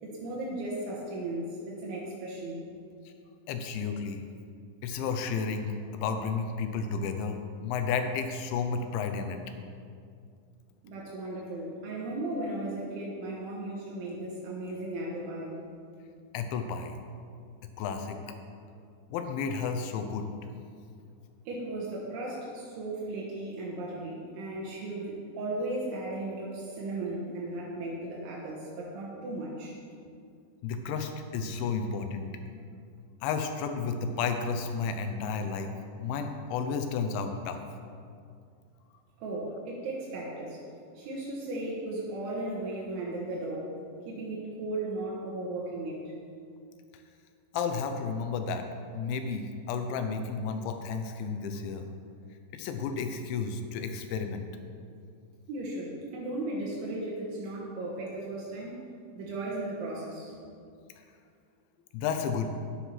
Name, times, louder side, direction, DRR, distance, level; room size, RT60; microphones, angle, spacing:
voice 1, 0.0-2.7 10.8-15.6 21.5-29.8 39.2-40.6 41.0-43.7 44.1-46.1 55.5-58.8 59.1-60.3, right 2 dB, 80° right, -5 dB, 3.9 m, -36 dB
voice 2, 3.5-4.2 4.8-9.4 16.3-17.0 17.8-18.2 19.1-20.3 30.6-32.3 33.2-35.7 36.0-37.6 47.5-48.7 48.9-51.9 52.5-54.4 61.9-62.5, left 5 dB, 80° left, 6 dB, 3.1 m, -32 dB
10.0 x 9.6 x 5.7 m, 2.3 s
omnidirectional pair, 5.4 m